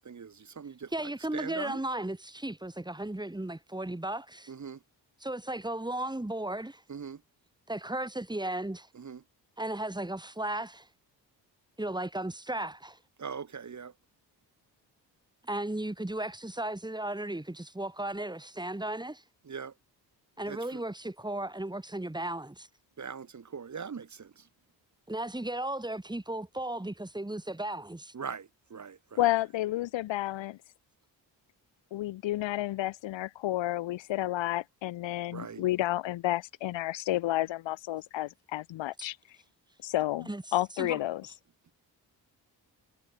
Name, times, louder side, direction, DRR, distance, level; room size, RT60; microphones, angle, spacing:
voice 1, 0.0-0.9 1.3-1.8 4.5-4.8 6.9-7.2 9.0-9.2 13.2-13.9 19.5-19.7 20.5-20.6 23.0-24.3 28.1-29.0 35.3-35.6, right 6 dB, 40° right, 1.4 m, -40 dB
voice 2, 0.9-4.5 5.2-6.8 7.7-8.9 9.6-10.9 11.8-13.0 15.4-19.2 20.4-22.7 25.1-28.1 39.0-39.1 40.3-40.4 40.8-41.0, right 1 dB, 10° right, 2.2 m, -35 dB
voice 3, 29.2-30.6 31.9-39.2 39.8-41.3, left 15 dB, 75° left, 0.8 m, -31 dB
supercardioid pair, 50°, 46 cm